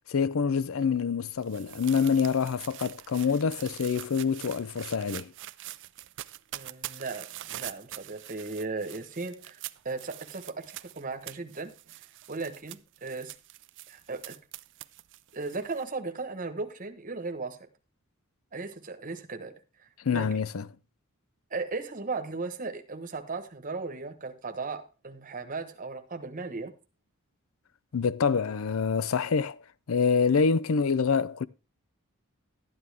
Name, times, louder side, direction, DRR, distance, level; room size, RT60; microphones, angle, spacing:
voice 1, 0.1-5.3 20.0-20.7 27.9-29.6 29.9-31.5, left 5 dB, 65° left, 0.5 m, -26 dB
sound 1, 0.8-15.8, right 15 dB, 55° right, 0.4 m, -44 dB
voice 2, 6.5-9.6 9.8-11.7 12.3-13.3 13.9-14.4 15.3-17.6 18.5-19.5 20.1-20.3 21.5-26.7, right 3 dB, 40° right, 1.2 m, -36 dB
12.5 x 9.6 x 3.5 m
head